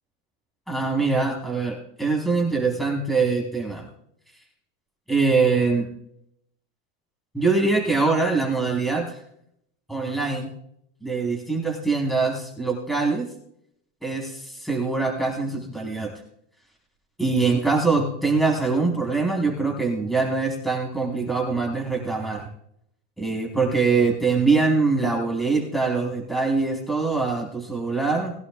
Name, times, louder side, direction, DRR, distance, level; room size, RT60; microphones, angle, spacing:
voice 1, 0.7-3.9 5.1-5.9 7.3-9.2 9.9-10.5 11.0-13.3 14.0-16.1 17.2-22.5 23.2-28.3, right 4 dB, ahead, -1 dB, 4.3 m, -23 dB
21.5 x 11.0 x 2.4 m, 0.74 s
supercardioid pair, 130°, 36 cm